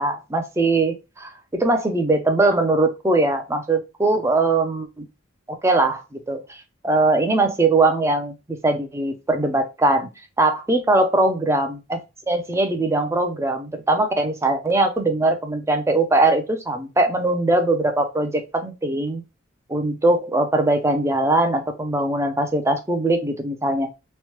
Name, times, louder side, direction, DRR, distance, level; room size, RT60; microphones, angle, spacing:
voice 1, 0.0-5.1 5.6-10.1 10.4-12.0 12.3-19.2 19.7-23.9, right 2 dB, 15° right, 6 dB, 0.4 m, -21 dB
3.1 x 2.1 x 2.9 m, 0.26 s
head